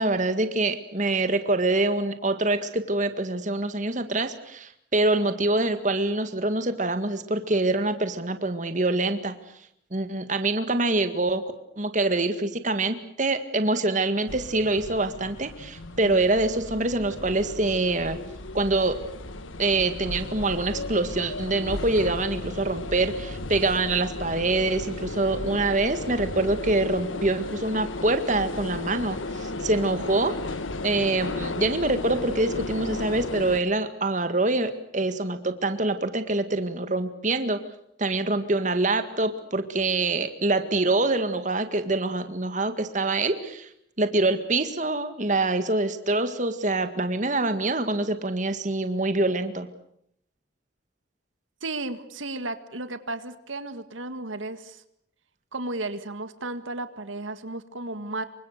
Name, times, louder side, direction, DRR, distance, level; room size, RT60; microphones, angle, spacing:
voice 1, 0.0-9.3 9.9-11.4 11.8-18.2 18.5-19.0 19.6-30.4 30.8-37.6 38.0-43.7 44.0-49.7, right 2 dB, 40° right, 9 dB, 1.9 m, -25 dB
sound 1, 14.3-33.6, left 2 dB, 90° left, 1.6 m, -35 dB
voice 2, 51.6-54.8 55.5-58.3, right 2 dB, 85° right, 10 dB, 2.0 m, -34 dB
27.5 x 25.0 x 6.7 m, 0.72 s
head